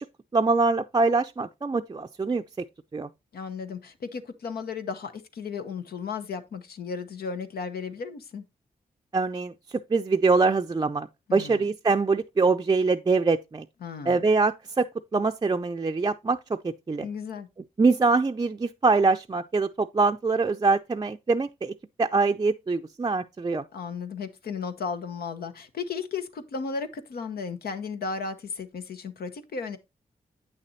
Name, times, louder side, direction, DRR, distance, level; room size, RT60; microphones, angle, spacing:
voice 1, 0.3-2.4 2.9-3.1 9.1-13.6 14.1-17.1 17.8-23.6, right 4 dB, 25° right, 0.4 m, -24 dB
voice 2, 3.3-8.4 11.3-11.6 13.8-14.3 17.0-17.5 23.7-29.8, left 5 dB, 80° left, 0.9 m, -35 dB
8.4 x 6.6 x 2.7 m
supercardioid pair, 45°, 16 cm